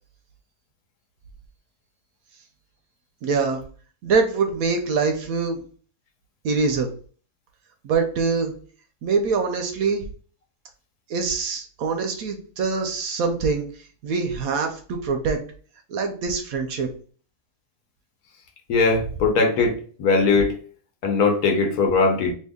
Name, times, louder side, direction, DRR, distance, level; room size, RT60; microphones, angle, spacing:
voice 1, 3.2-3.6 4.0-5.6 6.4-6.9 7.8-8.5 9.0-10.0 11.1-13.7 14.0-15.4 15.9-16.9, right 4 dB, 70° right, 4 dB, 0.9 m, -24 dB
voice 2, 18.7-19.7 20.0-20.5 21.0-22.3, left 4 dB, 75° left, 2 dB, 1.2 m, -19 dB
2.7 x 2.7 x 3.5 m, 0.43 s
omnidirectional pair, 1.7 m